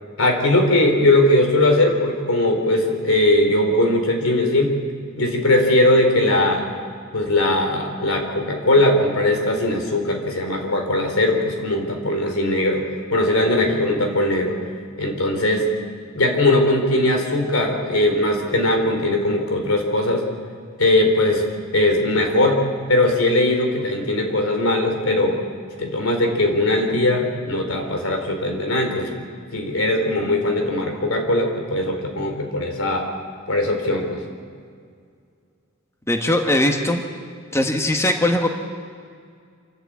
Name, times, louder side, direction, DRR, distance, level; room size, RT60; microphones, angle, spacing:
voice 1, 0.2-4.8 5.2-6.7 7.1-12.8 13.1-14.6 15.0-15.7 16.1-20.2 20.8-22.6 22.9-25.4 25.8-29.1 29.5-33.1 33.5-34.2, left 1 dB, 85° left, 3 dB, 3.7 m, -19 dB
voice 2, 36.1-37.0 37.5-38.5, left 1 dB, 15° left, 3 dB, 1.4 m, -20 dB
27.0 x 12.0 x 8.6 m, 2.2 s
head